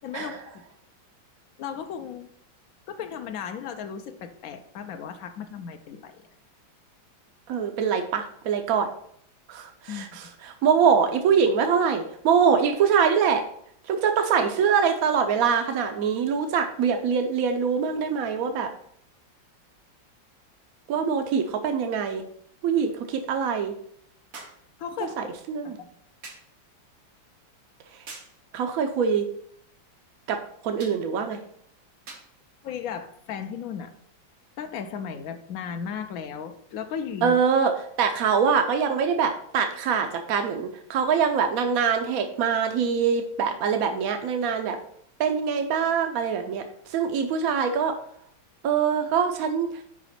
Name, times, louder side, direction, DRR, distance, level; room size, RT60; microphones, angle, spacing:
voice 1, 0.0-0.6 1.6-2.3 2.9-6.3 9.9-10.1 24.8-25.3 32.6-33.9 34.6-37.4, left 7 dB, 70° left, 6 dB, 0.8 m, -35 dB
voice 2, 7.5-8.9 9.5-13.4 13.9-18.7 20.9-22.2 22.6-23.7 25.2-25.8 28.5-29.3 30.3-30.4 30.6-31.4 37.2-37.7 38.0-44.8 45.2-47.9 48.6-49.8, right 6 dB, 75° right, 6 dB, 0.8 m, -24 dB
sound 1, 20.6-20.7 24.3-24.7 26.2-26.5 28.1-28.4 30.8-31.1 32.1-32.4 33.4-33.5, right 4 dB, 50° right, 1.3 m, -43 dB
5.1 x 4.9 x 5.6 m, 0.68 s
omnidirectional pair, 2.1 m